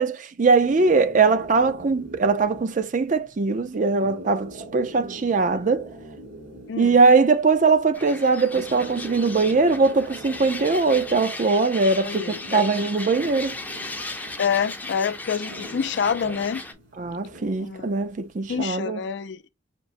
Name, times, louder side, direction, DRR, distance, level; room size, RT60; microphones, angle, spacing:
voice 1, 0.0-5.9 6.8-13.6 17.0-19.0, right 4 dB, 45° right, 0.5 m, -21 dB
sound 1, 0.6-18.6, right 1 dB, 65° right, 2.3 m, -43 dB
sound 2, 7.9-16.7, left 2 dB, 10° left, 0.5 m, -36 dB
voice 2, 12.0-12.6 14.4-16.6 17.6-17.9 18.5-19.5, left 7 dB, 70° left, 0.4 m, -27 dB
5.9 x 2.0 x 2.6 m
head